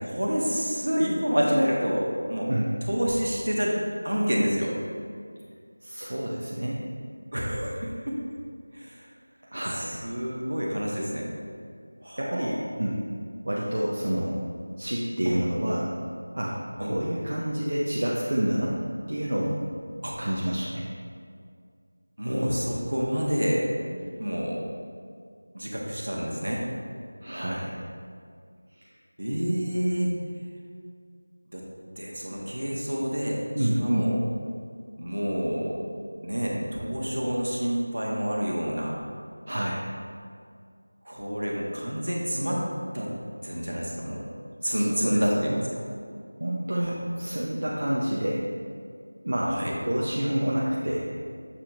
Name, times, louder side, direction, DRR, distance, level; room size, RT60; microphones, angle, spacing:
voice 1, 0.0-2.5 2.9-3.8 4.0-4.7 7.3-8.2 8.7-9.1 9.7-11.3 12.0-12.5 15.2-15.4 16.8-16.9 20.0-20.2 22.2-24.6 25.5-26.7 29.2-30.1 31.5-31.6 32.0-33.4 33.8-34.2 35.0-35.8 36.2-39.0 41.0-42.6 42.9-43.1 43.4-44.2 44.6-45.8 46.8-46.9 49.5-49.7, equal, 70° right, -2 dB, 1.3 m, -28 dB
voice 2, 5.8-6.8 9.5-10.0 12.2-13.0 13.4-14.4 14.8-15.9 16.3-18.8 19.1-19.6 20.2-20.8 27.2-27.7 28.8-28.9 33.5-34.1 39.5-39.8 44.6-45.6 46.4-48.4 49.2-51.1, right 1 dB, 55° right, -6 dB, 0.7 m, -28 dB
6.7 x 5.8 x 2.6 m, 2.1 s
figure-of-eight pair, 175°, 0 cm